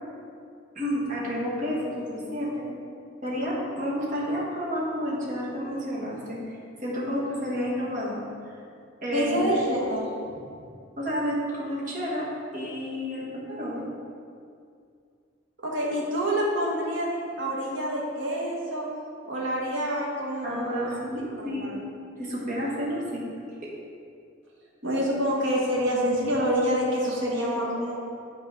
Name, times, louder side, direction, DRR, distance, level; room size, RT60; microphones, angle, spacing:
voice 1, 0.7-2.7 3.2-8.2 9.0-9.5 11.0-12.3 12.5-13.9 20.4-21.7 22.2-23.2 23.6-23.7, equal, 45° right, -6 dB, 1.7 m, -30 dB
voice 2, 9.1-10.1 15.6-18.9 19.2-20.9 21.4-21.8 24.8-28.0, equal, 75° right, -3 dB, 1.4 m, -27 dB
9.1 x 4.2 x 3.9 m, 2.3 s
head